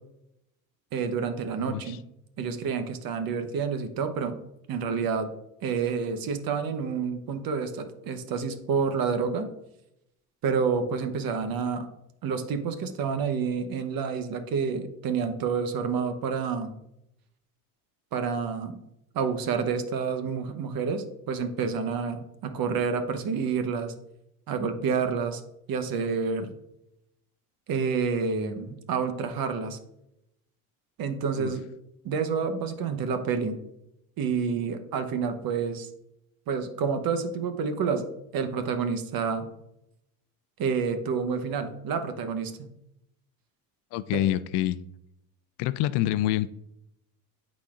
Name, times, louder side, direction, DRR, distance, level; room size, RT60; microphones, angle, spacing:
voice 1, 0.9-2.0 2.4-4.4 4.7-5.3 5.6-9.5 10.4-11.9 12.2-16.7 18.1-18.8 19.1-23.9 24.5-25.4 25.7-26.5 27.7-29.8 31.0-31.6 32.0-33.6 34.2-35.9 36.5-38.1 38.3-39.5 40.6-42.7 44.1-44.2, right 5 dB, 55° right, 8 dB, 1.0 m, -29 dB
voice 2, 1.7-2.0 31.4-31.5 43.9-44.8 45.6-46.5, left 13 dB, 70° left, 16 dB, 0.5 m, -26 dB
11.5 x 4.2 x 2.5 m, 0.82 s
supercardioid pair, 95°, 43 cm